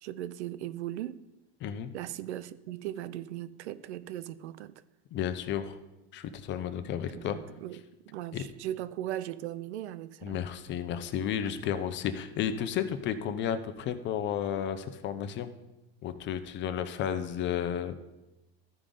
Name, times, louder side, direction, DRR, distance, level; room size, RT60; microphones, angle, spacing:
voice 1, 0.0-1.2 1.9-4.8 7.1-10.4, right 13 dB, 90° right, 0.5 m, -38 dB
voice 2, 1.6-1.9 5.1-5.8 6.1-7.4 8.3-8.4 10.2-15.5 16.0-17.9, left 9 dB, 35° left, 0.7 m, -32 dB
13.0 x 5.0 x 3.8 m
supercardioid pair, 120°, 33 cm